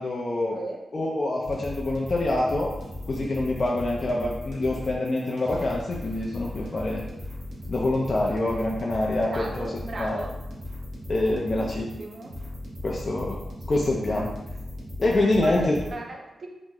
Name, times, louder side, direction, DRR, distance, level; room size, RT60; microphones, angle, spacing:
voice 1, 0.0-0.6 0.9-2.7 3.1-7.0 7.7-9.7 10.0-10.2 11.1-11.9 12.8-13.4 13.7-14.3 15.0-15.8, left 2 dB, 45° left, -3 dB, 0.4 m, -25 dB
sound 1, 1.4-15.9, left 1 dB, 85° right, 0.8 m, -37 dB
voice 2, 9.3-10.3 11.5-12.3 15.4-16.5, right 2 dB, 50° right, 1 dB, 0.5 m, -37 dB
2.9 x 2.0 x 3.6 m, 0.98 s
cardioid pair, 85°, 0 cm